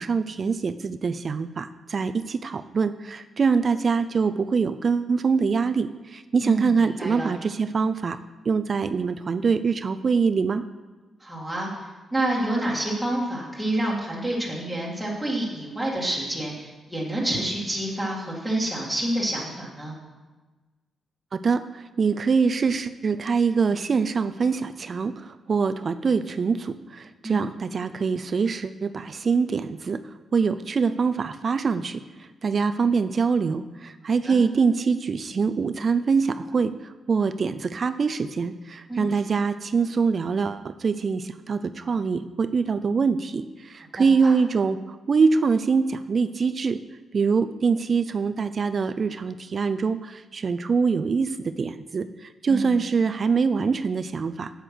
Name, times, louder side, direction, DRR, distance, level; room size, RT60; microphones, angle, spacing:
voice 1, 0.0-8.2 8.5-10.6 21.3-46.8 47.1-54.5, right 5 dB, 40° right, 11 dB, 0.4 m, -24 dB
voice 2, 6.4-7.3 11.2-20.0 27.2-27.4 34.1-34.4 38.9-39.1 44.0-44.3 52.5-52.7, right 1 dB, ahead, -5 dB, 2.0 m, -28 dB
8.0 x 8.0 x 6.1 m, 1.2 s
cardioid pair, 140°, 0 cm